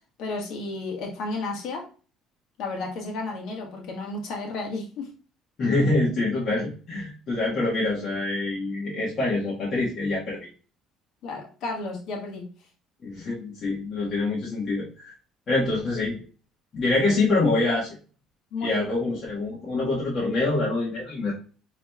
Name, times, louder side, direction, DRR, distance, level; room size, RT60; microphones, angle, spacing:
voice 1, 0.2-1.8 2.6-5.1 11.2-12.5 18.5-18.9, left 3 dB, 70° left, 0 dB, 1.4 m, -32 dB
voice 2, 5.6-10.4 13.0-15.1 15.5-16.2 16.7-17.9 18.6-21.3, left 2 dB, 45° left, -6 dB, 1.4 m, -25 dB
4.7 x 3.1 x 2.3 m, 0.37 s
cardioid pair, 110°, 0 cm